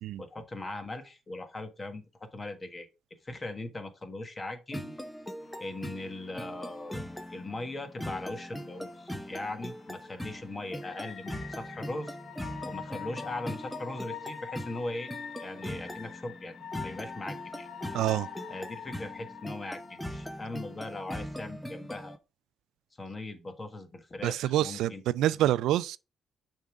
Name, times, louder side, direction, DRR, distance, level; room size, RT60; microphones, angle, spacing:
voice 1, 0.2-2.9 3.2-4.9 5.6-7.0 7.3-12.2 12.6-15.1 15.4-16.6 16.8-17.7 18.5-22.1 23.0-25.0, left 2 dB, 25° left, 1.4 m, -39 dB
sound 1, 4.7-22.2, equal, 5° left, 0.8 m, -41 dB
sound 2, 5.4-21.3, left 8 dB, 65° left, 0.8 m, -47 dB
voice 2, 17.9-18.3 24.2-26.0, right 13 dB, 85° right, 0.3 m, -27 dB
6.4 x 3.7 x 4.8 m
cardioid pair, 90°, 0 cm